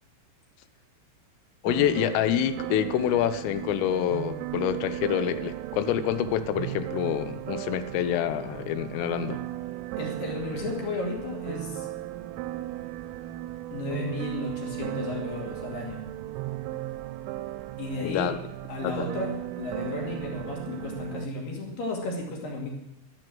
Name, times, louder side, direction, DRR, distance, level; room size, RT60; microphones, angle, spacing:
voice 1, 1.6-9.4 18.0-18.4 18.8-19.1, left 10 dB, 85° left, 12 dB, 3.5 m, -27 dB
sound 1, 1.7-21.3, right 14 dB, 85° right, 3.2 m, -36 dB
voice 2, 10.0-11.9 13.7-16.0 17.8-18.4 18.7-22.7, left 2 dB, 50° left, 0 dB, 3.7 m, -33 dB
12.0 x 10.5 x 7.7 m, 0.85 s
omnidirectional pair, 5.7 m